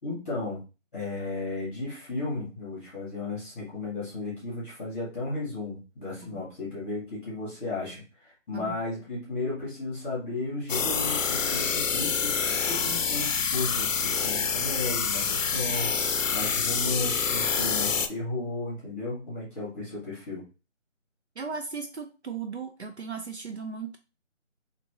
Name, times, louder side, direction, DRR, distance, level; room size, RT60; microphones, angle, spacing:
voice 1, 0.0-0.6 0.9-20.4, left 2 dB, 10° left, -7 dB, 1.5 m, -34 dB
sound 1, 10.7-18.1, left 6 dB, 85° left, 0.6 m, -27 dB
voice 2, 21.4-24.0, right 5 dB, 60° right, 5 dB, 0.6 m, -37 dB
3.0 x 2.8 x 2.9 m, 0.30 s
figure-of-eight pair, 170°, 38 cm